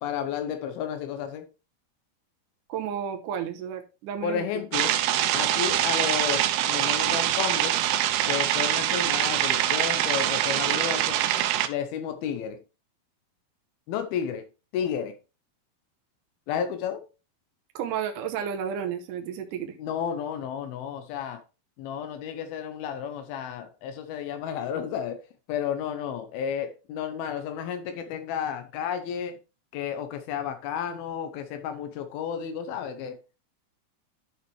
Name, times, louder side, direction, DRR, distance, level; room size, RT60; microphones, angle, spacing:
voice 1, 0.0-1.5 4.2-5.0 5.3-7.8 8.2-11.2 11.7-12.6 13.9-14.4 14.7-15.2 16.5-17.1 19.8-21.4 21.8-29.4 29.7-33.4, left 8 dB, 85° left, 2.7 m, -32 dB
voice 2, 2.7-4.5 17.8-19.8, right 8 dB, 70° right, 2.2 m, -32 dB
sound 1, 4.7-11.7, right 12 dB, 90° right, 2.6 m, -24 dB
11.5 x 5.5 x 3.1 m
omnidirectional pair, 4.3 m